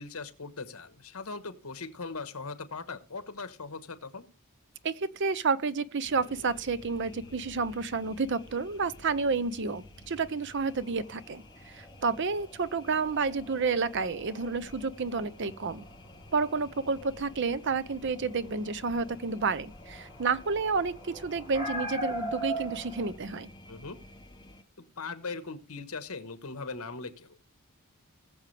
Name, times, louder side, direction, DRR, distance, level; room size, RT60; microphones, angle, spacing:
voice 1, 0.0-4.3 23.7-24.0 24.8-27.5, left 4 dB, 75° left, 1.3 m, -40 dB
voice 2, 4.8-15.9 16.3-23.5, right 4 dB, 55° right, 0.7 m, -30 dB
sound 1, 6.0-24.6, left 2 dB, 20° left, 0.9 m, -52 dB
sound 2, 10.7-23.1, right 1 dB, 25° right, 5.6 m, -42 dB
20.0 x 7.2 x 3.4 m
head